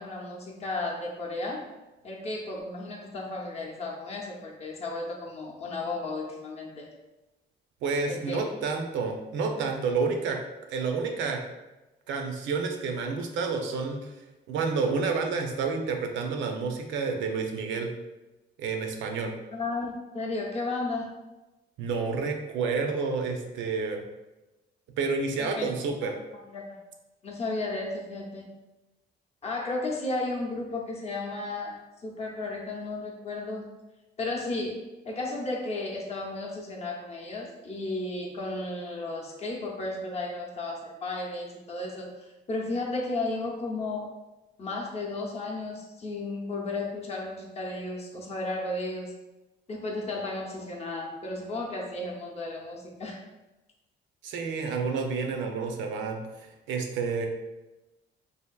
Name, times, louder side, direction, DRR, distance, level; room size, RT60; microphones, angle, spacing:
voice 1, 0.0-1.6 2.0-6.9 8.1-8.5 19.5-21.1 25.4-25.7 26.0-26.1 26.4-26.8 27.2-28.5 29.4-31.8 32.0-33.7 34.2-44.1 44.6-49.1 49.7-53.2, left 2 dB, 35° left, -1 dB, 0.6 m, -34 dB
voice 2, 7.8-10.4 10.7-11.4 12.1-14.0 14.5-17.9 18.6-19.3 21.8-24.0 25.0-26.2 54.2-57.3, right 4 dB, 80° right, 3 dB, 0.5 m, -29 dB
3.4 x 2.5 x 2.3 m, 1.0 s
cardioid pair, 100°, 19 cm